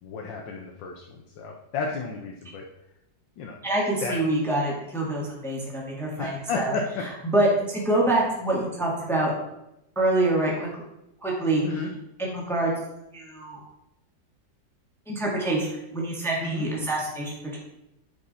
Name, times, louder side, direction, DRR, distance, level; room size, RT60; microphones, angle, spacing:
voice 1, 0.0-2.6 3.4-3.5 4.0-4.2 6.2-7.0 11.6-11.9 16.4-16.7, left 4 dB, 85° left, 0 dB, 1.6 m, -32 dB
voice 2, 3.6-6.7 7.2-9.3 9.9-10.7 11.2-11.6 12.2-12.7 13.1-13.6 15.1-15.7 15.9-17.6, right 2 dB, ahead, -3 dB, 1.6 m, -25 dB
10.0 x 5.3 x 4.1 m, 0.87 s
omnidirectional pair, 2.0 m